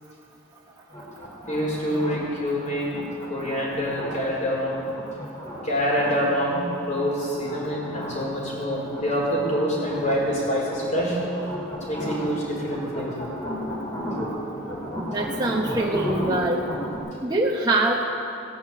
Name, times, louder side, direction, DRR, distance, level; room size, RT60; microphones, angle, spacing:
sound 1, 0.9-17.0, equal, 20° left, 3.4 m, -34 dB
voice 1, 1.5-3.0 3.3-4.8 5.6-11.2 11.9-13.1, equal, 40° left, -4 dB, 4.9 m, -26 dB
voice 2, 15.0-16.7 17.2-18.0, right 2 dB, 20° right, -3 dB, 1.1 m, -24 dB
16.5 x 10.5 x 8.5 m, 2.7 s
head